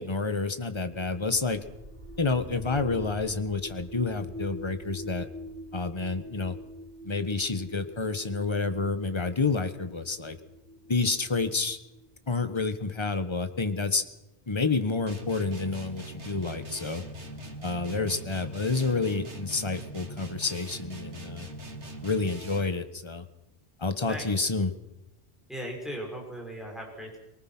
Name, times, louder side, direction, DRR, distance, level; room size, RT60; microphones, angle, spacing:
voice 1, 0.0-1.6 2.2-5.3 5.7-6.6 7.0-10.4 10.9-11.8 12.3-14.0 14.5-17.0 17.6-21.5 22.0-23.3 23.8-24.7, left 3 dB, 25° left, 10 dB, 1.3 m, -29 dB
sound 1, 0.7-12.5, right 1 dB, 50° right, 2.6 m, -45 dB
sound 2, 15.1-22.8, right 1 dB, 75° right, 2.6 m, -42 dB
voice 2, 25.5-27.2, equal, ahead, -1 dB, 6.0 m, -37 dB
23.5 x 19.0 x 6.1 m, 0.93 s
omnidirectional pair, 1.2 m